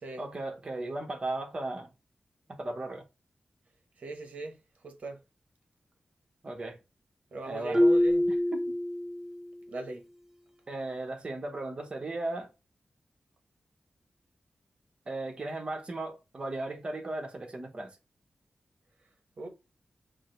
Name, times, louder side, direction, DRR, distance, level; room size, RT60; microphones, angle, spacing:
voice 1, 0.2-1.9 2.6-3.0 6.4-6.8 7.4-7.8 8.5-8.7 10.7-12.5 15.1-17.9, right 2 dB, 40° right, 1.0 m, -36 dB
voice 2, 4.0-4.5 4.8-5.2 7.3-8.3 9.7-10.0 19.4-19.5, right 2 dB, 65° right, 0.9 m, -39 dB
Marimba xylophone, 7.7-9.5, left 1 dB, 15° right, 0.5 m, -25 dB
4.9 x 2.0 x 3.7 m
wide cardioid pair, 125°, 3 cm